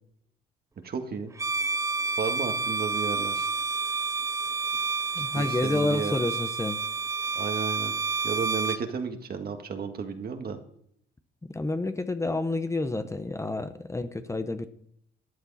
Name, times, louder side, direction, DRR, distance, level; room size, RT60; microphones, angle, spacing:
voice 1, 0.8-1.3 2.2-3.5 5.2-6.1 7.3-7.9 8.2-10.6, right 5 dB, 50° right, 6 dB, 1.8 m, -33 dB
Bowed string instrument, 1.3-8.8, right 4 dB, 15° right, 0.4 m, -29 dB
voice 2, 5.1-6.8 11.4-14.7, left 2 dB, 15° left, 9 dB, 0.9 m, -29 dB
14.0 x 10.0 x 4.2 m, 0.70 s
cardioid pair, 90°, 20 cm